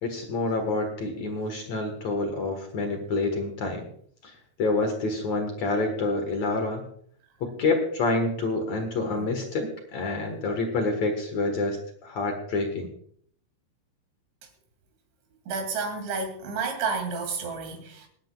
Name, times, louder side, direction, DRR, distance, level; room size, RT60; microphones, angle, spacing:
voice 1, 0.0-3.9 4.2-4.3 4.6-6.8 7.4-12.9, left 3 dB, 70° left, 1.6 m, -27 dB
voice 2, 15.5-18.1, right 4 dB, 65° right, 4.9 m, -31 dB
28.0 x 9.7 x 2.4 m
omnidirectional pair, 5.7 m